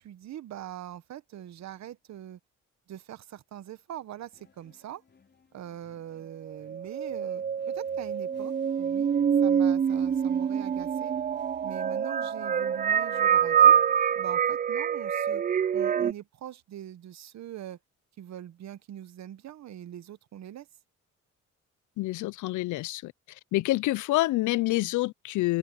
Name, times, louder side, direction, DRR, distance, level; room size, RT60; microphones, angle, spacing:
voice 1, 0.0-2.4 2.9-5.0 5.5-9.1 9.4-11.2 11.6-13.7 14.2-15.4 15.7-17.8 18.2-20.7, right 11 dB, 65° right, 1.0 m, -43 dB
sound 1, 4.3-12.2, left 5 dB, 35° left, 4.3 m, -61 dB
sound 2, 6.5-16.1, right 8 dB, 30° right, 0.4 m, -25 dB
voice 2, 22.0-23.1 23.5-25.6, left 18 dB, 80° left, 0.5 m, -27 dB
open air
cardioid pair, 90°, 30 cm